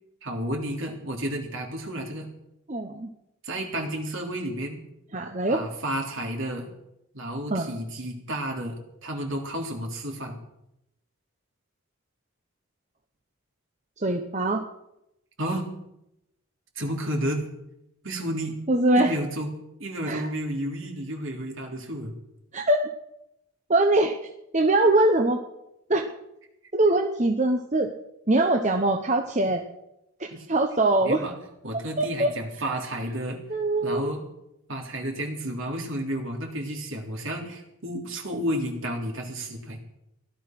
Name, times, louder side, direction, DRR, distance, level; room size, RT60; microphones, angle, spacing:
voice 1, 0.2-2.3 3.4-4.8 5.5-6.7 7.1-10.4 15.4-15.7 16.8-17.4 18.0-18.6 19.0-22.1 30.3-30.5 31.0-31.4 31.6-33.4 33.8-34.2 34.7-39.8, right 1 dB, 65° right, 1 dB, 3.3 m, -31 dB
voice 2, 2.7-3.1 5.1-5.6 7.5-7.7 14.0-14.6 18.7-19.1 20.1-20.2 22.5-22.9 23.7-24.2 24.5-25.4 25.9-26.1 26.7-27.9 28.3-29.7 30.2-31.2 32.0-32.3 33.5-34.2, right 2 dB, 35° right, 4 dB, 0.9 m, -22 dB
16.5 x 12.0 x 6.0 m, 0.85 s
head